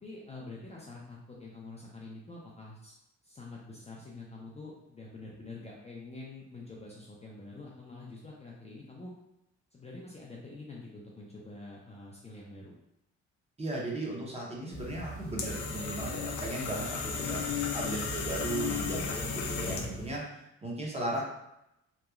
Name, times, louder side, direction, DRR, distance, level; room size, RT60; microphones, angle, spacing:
voice 1, 0.0-3.0 3.2-9.1 9.7-12.8 18.5-18.8, left 2 dB, 20° left, -4 dB, 0.4 m, -46 dB
voice 2, 13.6-21.2, right 2 dB, 20° right, -3 dB, 0.8 m, -36 dB
sound 1, 14.7-20.1, left 5 dB, 80° left, 0.5 m, -35 dB
2.9 x 2.2 x 2.3 m, 0.85 s
cardioid pair, 90°, 30 cm